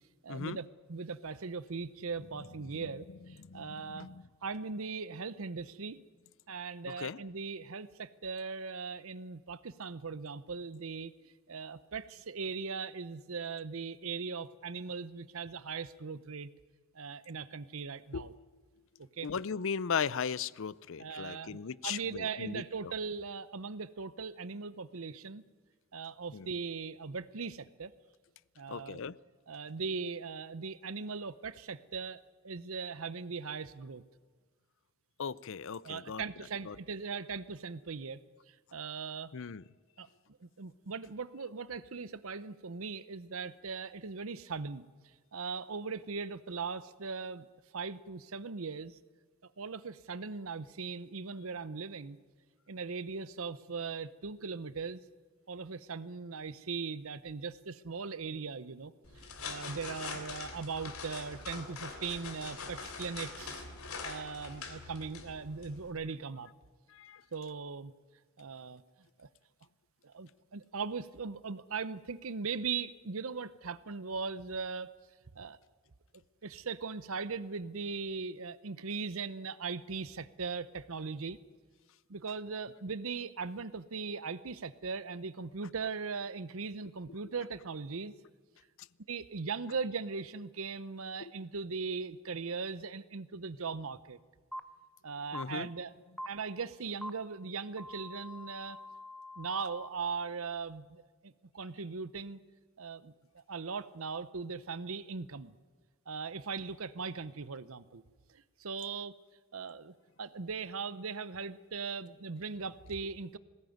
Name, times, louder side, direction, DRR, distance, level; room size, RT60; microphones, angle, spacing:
voice 1, 0.2-4.1 4.4-6.0 6.5-16.5 16.9-18.3 19.2-19.3 21.0-25.4 25.9-27.9 28.6-29.0 29.5-34.0 35.8-38.2 38.5-39.3 40.0-40.1 40.4-44.9 45.3-47.5 47.7-49.0 49.6-52.2 52.7-55.0 55.5-63.6 64.0-66.5 67.3-67.9 68.4-68.8 69.2-69.3 70.0-74.9 75.3-75.6 76.4-81.4 82.1-88.1 89.1-94.2 95.0-95.9 96.2-98.8 99.4-102.4 102.8-105.5 106.1-108.0 108.3-109.1 109.5-113.4, right 5 dB, 70° right, 16 dB, 0.8 m, -39 dB
voice 2, 3.5-4.2 6.9-7.2 18.1-18.3 19.2-22.6 26.3-26.5 28.7-29.2 35.2-36.2 36.7-36.8 39.3-39.6 66.9-67.2 91.2-91.3 95.3-95.7, left 6 dB, 65° left, 20 dB, 0.6 m, -37 dB
sound 1, 59.0-65.9, left 4 dB, 85° left, 3.2 m, -43 dB
sound 2, 94.5-94.6 95.3-95.4 96.2-96.3 97.0-97.1 97.8-99.9, left 1 dB, ahead, 0.9 m, -44 dB
20.5 x 17.5 x 9.4 m, 1.5 s
head